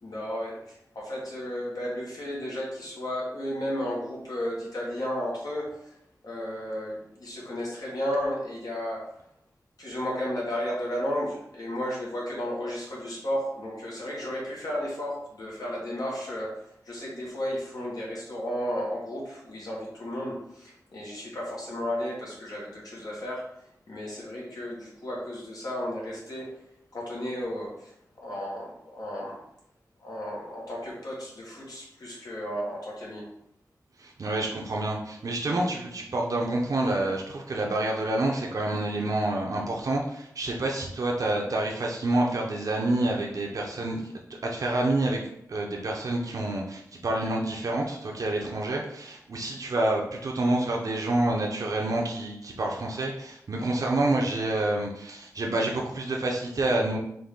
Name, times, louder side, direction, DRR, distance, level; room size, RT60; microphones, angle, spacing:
voice 1, 0.0-5.9 6.2-9.0 9.8-23.4 23.9-26.5 26.9-29.4 30.0-33.2, equal, 80° left, -4 dB, 1.4 m, -33 dB
voice 2, 34.0-44.0 44.4-57.0, right 2 dB, 65° right, -1 dB, 0.6 m, -28 dB
4.0 x 2.6 x 3.6 m, 0.75 s
wide cardioid pair, 85°, 6 cm